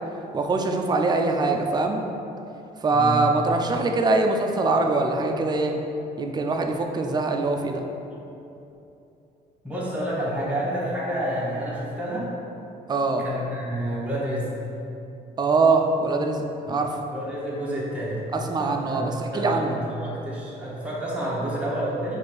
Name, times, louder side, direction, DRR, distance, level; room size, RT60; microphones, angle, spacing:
voice 1, 0.3-2.0 2.8-5.8 6.2-7.8 12.9-13.3 15.4-16.4 16.7-17.0 18.3-19.8, right 3 dB, 25° right, 3 dB, 0.4 m, -23 dB
voice 2, 2.9-3.3 9.6-12.3 13.2-14.5 16.7-16.8 17.1-18.2 18.6-22.2, right 1 dB, 5° right, -7 dB, 1.0 m, -29 dB
4.2 x 2.6 x 4.9 m, 2.8 s
cardioid pair, 110°, 17 cm